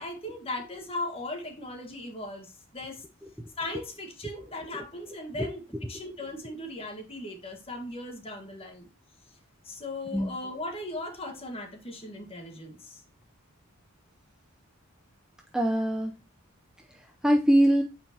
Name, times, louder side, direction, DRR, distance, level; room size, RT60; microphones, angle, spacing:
voice 1, 0.0-3.0 3.6-8.9 9.6-13.0, left 2 dB, 25° left, 1.4 m, -38 dB
voice 2, 4.4-4.8 5.4-5.5 10.1-10.4 15.5-16.2 16.9-17.8, equal, 5° right, 0.5 m, -24 dB
8.7 x 4.5 x 2.8 m
head